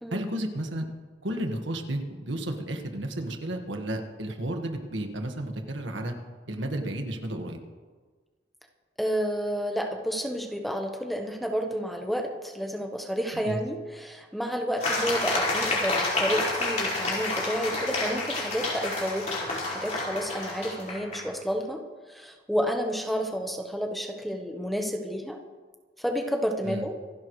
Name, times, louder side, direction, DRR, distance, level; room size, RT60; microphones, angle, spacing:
voice 1, 0.1-0.8 1.2-6.2 6.5-7.6 13.3-13.6 26.6-26.8, right 1 dB, 85° right, 4 dB, 1.6 m, -32 dB
voice 2, 9.0-21.8 22.1-25.4 26.0-26.9, equal, ahead, 3 dB, 1.0 m, -30 dB
sound 1, 14.8-21.2, left 2 dB, 40° left, 4.6 m, -29 dB
26.0 x 11.5 x 3.2 m, 1.4 s
head